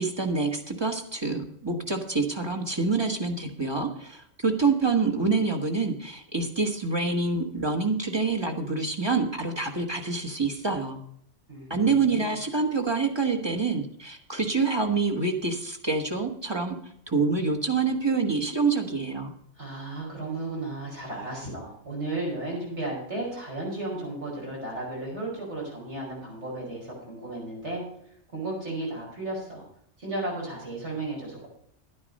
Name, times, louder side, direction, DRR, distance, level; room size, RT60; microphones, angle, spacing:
voice 1, 0.0-11.0 11.7-16.8 17.1-19.3, right 4 dB, 20° right, 4 dB, 1.4 m, -26 dB
voice 2, 11.5-12.4 19.6-27.8 28.3-29.6 30.0-31.5, right 2 dB, 65° right, -3 dB, 5.6 m, -34 dB
11.5 x 9.6 x 5.4 m, 0.69 s
omnidirectional pair, 1.2 m